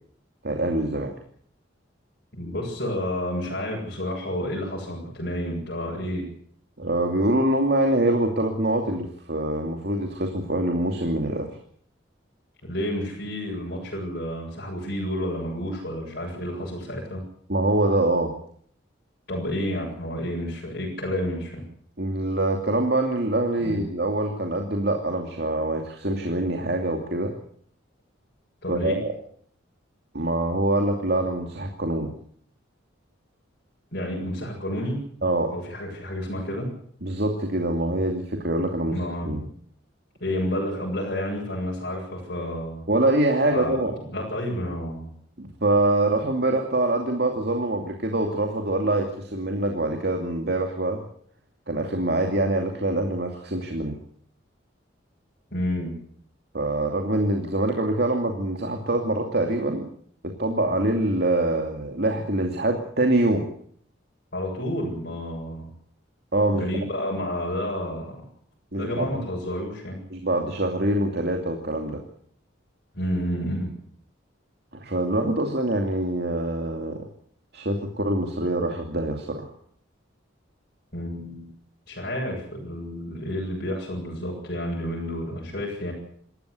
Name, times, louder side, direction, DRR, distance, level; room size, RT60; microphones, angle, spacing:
voice 1, 0.4-1.1 6.8-11.5 17.5-18.3 22.0-27.3 28.7-29.1 30.1-32.1 35.2-35.5 37.0-39.0 39.2-39.4 42.9-43.9 45.4-51.0 51.7-54.0 56.5-59.9 60.2-63.5 66.3-66.7 68.7-69.1 70.1-72.0 74.7-77.1 77.5-79.5, right 1 dB, 55° right, 3 dB, 2.6 m, -24 dB
voice 2, 2.4-6.3 12.6-17.2 19.3-21.6 23.6-23.8 28.6-29.0 33.9-35.0 35.5-36.7 38.8-39.5 40.2-42.8 43.5-43.8 44.1-45.1 55.5-56.0 64.3-65.7 66.5-68.2 68.8-70.0 72.9-73.7 80.9-81.5 81.9-85.9, equal, 50° left, -3 dB, 7.8 m, -30 dB
26.5 x 14.5 x 8.3 m, 0.62 s
head